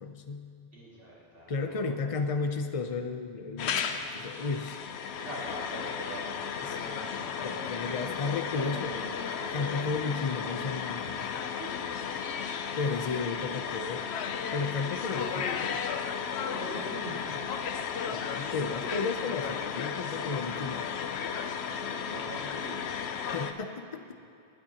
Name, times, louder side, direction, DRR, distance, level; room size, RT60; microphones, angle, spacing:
voice 1, 0.0-0.7 1.5-4.9 6.6-6.8 7.4-9.0 9.5-11.1 12.7-14.0 14.5-15.8 18.1-20.9 23.3-24.0, left 4 dB, 35° left, 6 dB, 0.7 m, -33 dB
voice 2, 0.7-1.8 5.2-8.2 8.5-9.9 11.0-11.3 11.6-12.3 16.4-17.1 21.6-22.8, right 1 dB, 60° right, -8 dB, 2.6 m, -43 dB
sound 1, 3.6-23.5, left 7 dB, 80° left, 0.9 m, -34 dB
26.0 x 8.8 x 2.9 m, 2.6 s
omnidirectional pair, 1.1 m